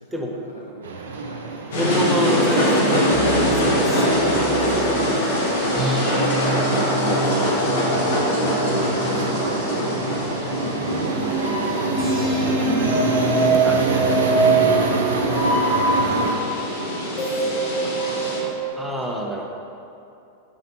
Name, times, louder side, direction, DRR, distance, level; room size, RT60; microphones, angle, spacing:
voice 1, 0.1-0.9 1.3-1.5 7.1-13.6 14.1-15.9 16.2-17.3 17.7-19.2, left 1 dB, 90° left, -3 dB, 0.4 m, -40 dB
sound 1, 0.8-16.3, right 3 dB, 65° right, 0.4 m, -27 dB
sound 2, 1.7-18.4, right 1 dB, 60° left, 0.8 m, -22 dB
voice 2, 1.7-5.5 8.7-9.4 12.2-12.4 13.6-13.9 15.7-16.0 18.8-19.5, equal, 5° right, -1 dB, 0.5 m, -28 dB
sound 3, 3.1-5.1 5.8-11.0 12.0-16.2 17.2-18.7, right 1 dB, 20° left, 1.1 m, -30 dB
5.9 x 3.0 x 2.9 m, 2.7 s
figure-of-eight pair, 90°, 0 cm